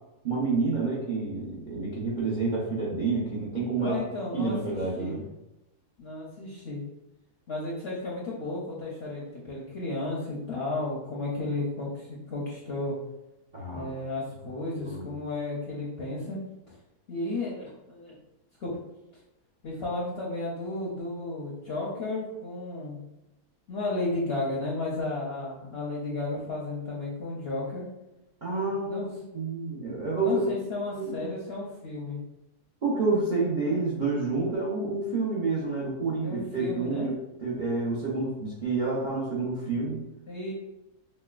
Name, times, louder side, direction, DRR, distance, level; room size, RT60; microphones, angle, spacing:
voice 1, 0.2-4.0 4.3-5.2 13.5-13.9 14.8-15.1 28.4-30.5 30.9-31.3 32.8-40.0, right 3 dB, 55° right, -6 dB, 0.5 m, -29 dB
voice 2, 3.8-5.2 6.0-6.8 7.5-12.9 13.7-16.4 17.1-18.1 18.6-18.7 19.6-23.0 23.7-27.8 28.7-29.1 30.2-32.2 36.2-37.2 40.3-40.5, left 2 dB, 60° left, -5 dB, 0.7 m, -33 dB
5.3 x 2.1 x 2.3 m, 0.92 s
omnidirectional pair, 1.7 m